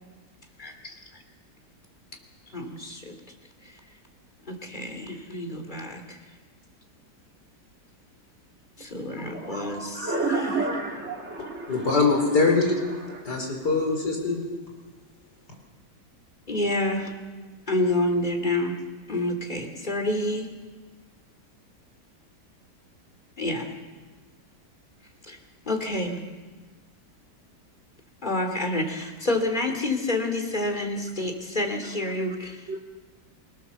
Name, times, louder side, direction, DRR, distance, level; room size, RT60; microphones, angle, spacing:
voice 1, 0.6-1.2 2.5-3.1 4.4-6.2 8.8-10.5 16.5-17.1 17.7-18.8 19.1-20.5 23.4-23.8 25.3-25.4 25.6-26.2 28.2-32.8, left 1 dB, 25° left, 4 dB, 2.9 m, -28 dB
voice 2, 9.0-12.0 13.1-13.3 31.8-31.9 32.7-32.8, right 3 dB, 40° right, 1 dB, 2.7 m, -31 dB
voice 3, 11.7-12.8 13.3-14.4, left 3 dB, 70° left, 1 dB, 5.3 m, -22 dB
25.5 x 18.5 x 7.1 m, 1.3 s
omnidirectional pair, 1.9 m